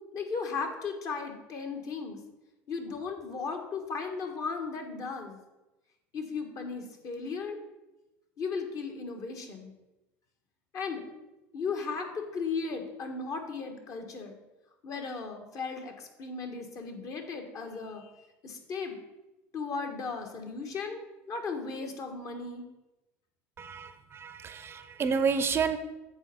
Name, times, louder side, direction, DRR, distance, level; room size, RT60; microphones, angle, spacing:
voice 1, 0.1-2.2 2.7-5.4 6.1-7.6 8.4-9.7 10.7-11.0 11.5-14.4 14.8-19.0 19.5-22.7, left 4 dB, 50° left, 4 dB, 1.5 m, -36 dB
voice 2, 23.6-25.8, right 6 dB, 35° right, 11 dB, 0.6 m, -30 dB
8.0 x 4.3 x 5.9 m, 1.0 s
supercardioid pair, 105°, 7 cm